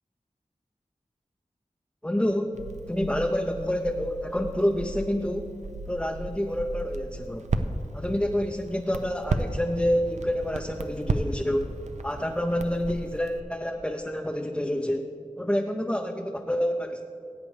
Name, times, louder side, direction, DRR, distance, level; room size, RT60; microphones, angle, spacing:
voice 1, 2.0-5.5 5.9-7.5 7.9-11.7 12.0-15.1 15.4-17.0, equal, 10° left, 3 dB, 0.5 m, -28 dB
Crackle, 2.5-13.4, right 3 dB, 65° right, 0.5 m, -34 dB
16.0 x 8.1 x 3.3 m, 2.6 s
wide cardioid pair, 45°, 13 cm